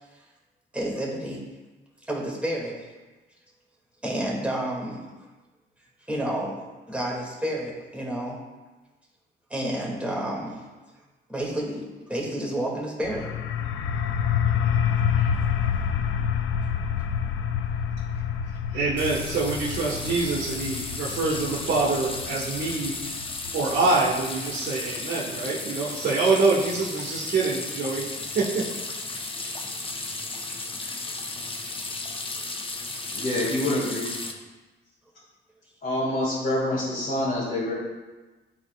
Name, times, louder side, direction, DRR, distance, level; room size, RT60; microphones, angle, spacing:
voice 1, 0.7-1.4 2.1-2.8 4.0-5.0 6.1-6.6 6.9-8.4 9.5-10.6 11.3-13.3 15.1-15.3 29.2-29.3, right 1 dB, 5° right, -4 dB, 2.1 m, -30 dB
sound 1, 13.0-24.5, left 8 dB, 75° left, 0.5 m, -28 dB
voice 2, 18.7-22.9 23.5-28.0 28.3-28.6, right 3 dB, 60° right, -6 dB, 1.5 m, -25 dB
sound 2, 19.0-34.3, left 3 dB, 25° left, 0.8 m, -34 dB
voice 3, 33.1-34.0 35.8-37.7, left 1 dB, 50° left, -8 dB, 2.2 m, -26 dB
12.0 x 4.1 x 2.3 m, 1.2 s
cardioid pair, 90°, 20 cm